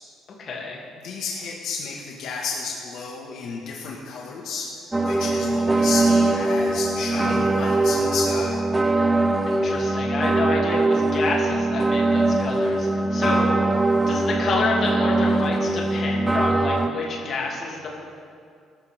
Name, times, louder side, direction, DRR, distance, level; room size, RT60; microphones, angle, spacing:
voice 1, 0.4-0.8 9.5-13.4 14.1-17.9, left 3 dB, 40° left, -3 dB, 2.9 m, -28 dB
voice 2, 1.0-4.7 5.0-8.6 13.2-13.4, left 4 dB, 70° left, -2 dB, 1.8 m, -32 dB
sound 1, 4.9-16.9, right 2 dB, 10° right, 0.6 m, -21 dB
22.0 x 13.0 x 3.7 m, 2.3 s
cardioid pair, 160°, 0 cm